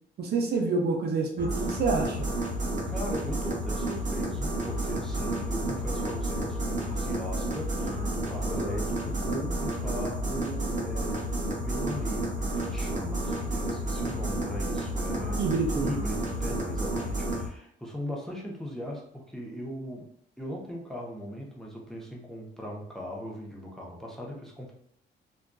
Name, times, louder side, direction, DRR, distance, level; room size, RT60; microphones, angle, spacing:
voice 1, 0.2-2.3 15.4-15.9, right 4 dB, 55° right, 2 dB, 0.5 m, -27 dB
sound 1, 1.4-17.5, right 1 dB, 40° right, 0.9 m, -31 dB
voice 2, 2.6-11.2 11.6-15.4 15.8-20.1 20.4-24.7, equal, ahead, -2 dB, 0.6 m, -39 dB
2.5 x 2.2 x 2.2 m, 0.68 s
cardioid pair, 90°, 20 cm